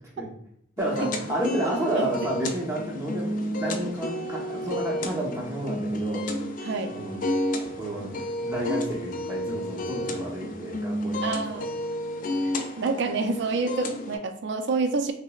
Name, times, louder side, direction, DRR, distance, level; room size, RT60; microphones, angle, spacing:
sound 1, 0.8-14.2, left 1 dB, 40° left, 0.3 m, -31 dB
voice 1, 0.8-6.4 6.9-7.2 7.8-8.2 8.4-11.2 12.2-12.3, right 1 dB, 15° right, -3 dB, 0.8 m, -30 dB
voice 2, 1.9-2.3 6.6-7.0 11.2-11.6 12.8-15.1, right 3 dB, 60° right, 7 dB, 0.4 m, -28 dB
6.0 x 2.0 x 2.3 m, 0.68 s
head